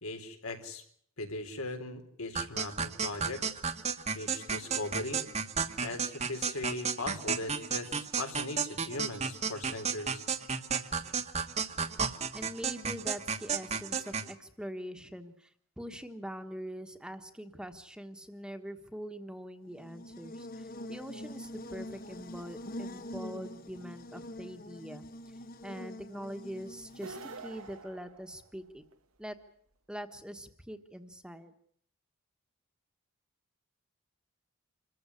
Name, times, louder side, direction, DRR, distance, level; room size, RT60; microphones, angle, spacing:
voice 1, 0.0-0.8 1.2-3.4 4.1-5.2 5.8-10.3, left 2 dB, 85° left, 6 dB, 4.0 m, -39 dB
sound 1, 2.4-14.3, right 6 dB, 30° right, 1.2 m, -33 dB
voice 2, 12.3-25.0 25.6-28.8 29.2-29.4 29.9-31.5, equal, 5° right, 7 dB, 1.3 m, -43 dB
Buzz, 19.7-27.8, left 1 dB, 40° left, 1.0 m, -45 dB
sound 2, 26.9-28.9, right 4 dB, 85° right, 1.4 m, -47 dB
26.5 x 15.0 x 9.8 m, 0.64 s
head